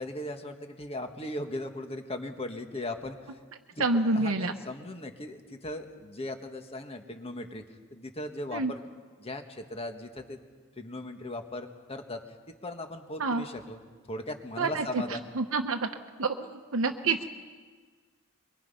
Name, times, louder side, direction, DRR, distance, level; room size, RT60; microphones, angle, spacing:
voice 1, 0.0-3.4 3.7-7.6 7.9-10.4 10.7-12.2 12.6-13.8 14.1-15.2, left 1 dB, 30° left, 6 dB, 1.6 m, -38 dB
voice 2, 3.8-4.5 8.5-8.7 13.2-13.4 14.6-14.8 15.4-15.9 16.2-17.3, right 3 dB, 80° right, 5 dB, 1.0 m, -27 dB
23.5 x 23.5 x 5.7 m, 1.5 s
head